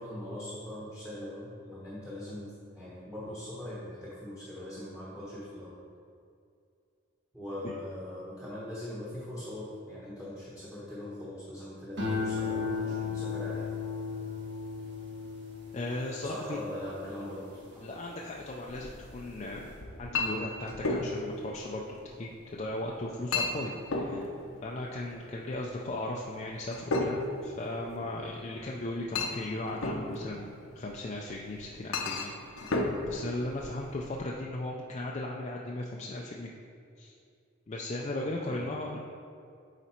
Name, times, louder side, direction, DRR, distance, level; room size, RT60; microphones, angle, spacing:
voice 1, 0.0-5.7 7.3-13.7 16.2-17.9 38.5-38.7, left 1 dB, 5° right, -8 dB, 1.1 m, -41 dB
sound 1, 12.0-18.5 19.0-19.4, left 5 dB, 55° right, 1.5 m, -36 dB
voice 2, 15.7-16.6 17.8-19.6 20.0-21.8 22.2-24.3 24.6-36.5 37.0-37.2 37.7-39.0, left 2 dB, 30° left, -2 dB, 0.4 m, -37 dB
Chink clink, 18.7-34.2, left 2 dB, 75° left, 0.8 m, -36 dB
9.0 x 4.1 x 4.3 m, 2.4 s
head